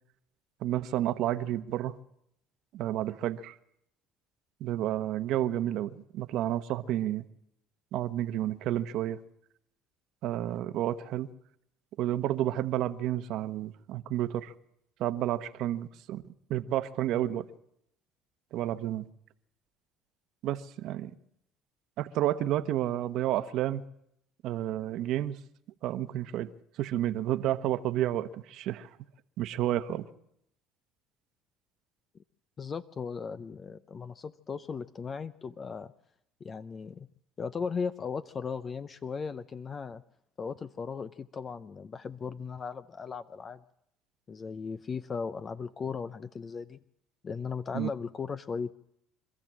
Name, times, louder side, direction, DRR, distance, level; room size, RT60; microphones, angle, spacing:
voice 1, 0.6-1.9 2.7-3.6 4.6-7.2 7.9-9.2 10.2-11.3 12.0-14.5 15.0-16.2 16.5-17.5 18.5-19.0 20.4-21.1 22.0-23.8 24.4-25.4 25.8-26.5 26.8-28.9 29.4-30.0 47.7-47.9, right 13 dB, 65° right, 1.1 m, -30 dB
voice 2, 32.6-35.9 36.4-37.1 37.4-40.0 40.4-43.6 44.3-46.8 47.2-48.7, left 5 dB, 35° left, 0.7 m, -37 dB
25.5 x 13.5 x 7.5 m
supercardioid pair, 95°, 0 cm